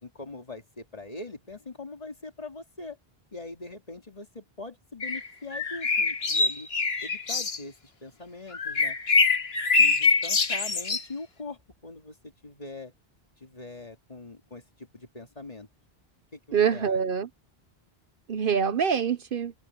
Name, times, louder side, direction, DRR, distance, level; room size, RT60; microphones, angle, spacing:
voice 1, 0.0-3.0 3.3-6.7 7.0-9.0 9.8-12.9 13.4-15.7 16.3-17.0, left 3 dB, 40° left, 2.5 m, -42 dB
sound 1, 5.0-5.3 5.5-7.6 8.5-11.0, left 4 dB, 75° left, 2.0 m, -24 dB
voice 2, 16.5-17.3 18.3-19.5, right 7 dB, 60° right, 0.9 m, -25 dB
open air
omnidirectional pair, 1.1 m